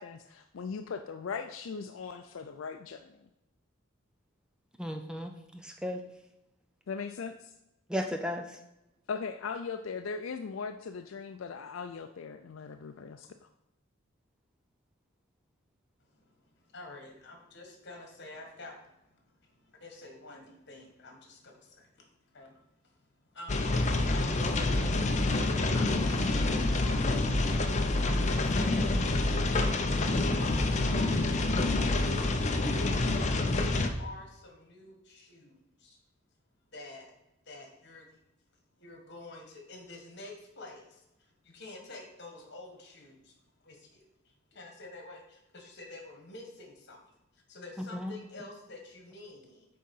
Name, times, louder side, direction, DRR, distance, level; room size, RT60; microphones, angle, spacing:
voice 1, 0.0-3.3 6.9-7.5 9.1-13.3, left 5 dB, 75° left, 7 dB, 0.4 m, -39 dB
voice 2, 4.8-6.0 7.9-8.5 47.8-48.2, left 1 dB, 5° right, 4 dB, 0.5 m, -35 dB
voice 3, 16.7-18.8 19.7-21.9 22.3-22.5 23.3-25.1 25.7-27.2 28.0-29.1 29.6-30.0 30.4-31.1 33.6-35.6 35.8-36.0 36.7-37.1 37.5-38.1 38.8-40.9 41.5-43.2 43.6-44.0 44.5-47.0 47.5-49.7, left 2 dB, 55° left, 2 dB, 1.7 m, -47 dB
sound 1, 23.5-33.9, left 2 dB, 35° left, 0.6 m, -27 dB
8.6 x 3.8 x 5.5 m, 0.91 s
head